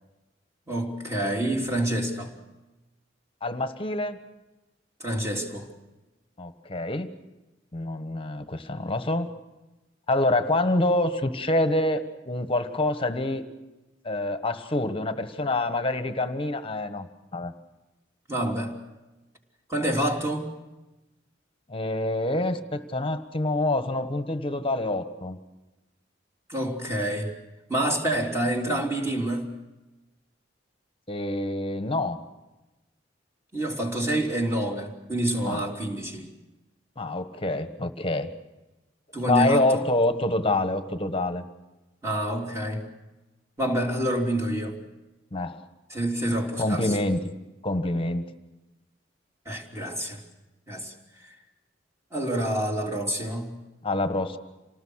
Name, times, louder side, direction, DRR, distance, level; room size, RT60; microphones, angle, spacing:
voice 1, 0.7-2.3 5.0-5.7 18.3-18.8 19.7-20.5 26.5-27.3 27.7-29.6 33.5-36.3 39.1-39.9 42.0-42.9 43.6-44.8 45.9-46.9 49.5-50.2 50.7-50.9 51.3-51.4 52.1-53.6, right 1 dB, 15° right, 1 dB, 3.3 m, -27 dB
voice 2, 3.4-4.2 6.4-7.1 7.7-9.3 10.1-13.4 14.0-17.1 17.3-17.5 21.7-25.4 31.1-32.2 35.5-35.6 37.0-38.3 39.3-41.4 45.3-45.6 46.6-47.3 47.6-48.2 53.8-54.4, left 2 dB, 30° left, 9 dB, 1.3 m, -26 dB
27.5 x 19.0 x 6.4 m, 1.1 s
head